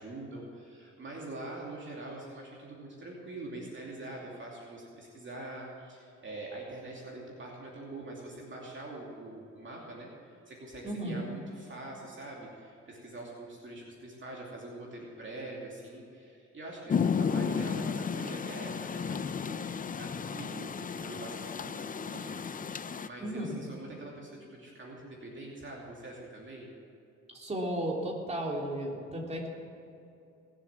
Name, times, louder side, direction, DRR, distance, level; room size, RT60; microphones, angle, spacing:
voice 1, 0.0-26.7, right 2 dB, 40° right, -3 dB, 2.7 m, -44 dB
voice 2, 10.8-11.2 23.2-23.6 27.3-29.5, right 1 dB, 20° right, -1 dB, 3.2 m, -34 dB
Rain, 16.9-23.1, left 6 dB, 30° left, 0.5 m, -33 dB
19.5 x 7.5 x 7.3 m, 2.6 s
cardioid pair, 90°, 30 cm